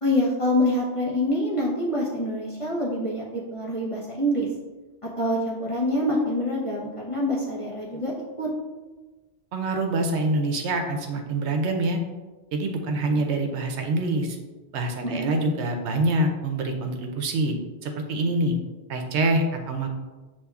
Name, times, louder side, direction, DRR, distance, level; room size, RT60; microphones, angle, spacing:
voice 1, 0.0-4.5 5.0-8.1 8.4-8.5 15.0-15.3, left 1 dB, 35° left, -5 dB, 0.6 m, -26 dB
voice 2, 9.5-12.0 12.5-14.4 14.7-17.6 17.8-18.5 18.9-19.9, right 2 dB, 75° right, 4 dB, 0.9 m, -25 dB
6.6 x 2.8 x 2.3 m, 1.2 s
omnidirectional pair, 1.2 m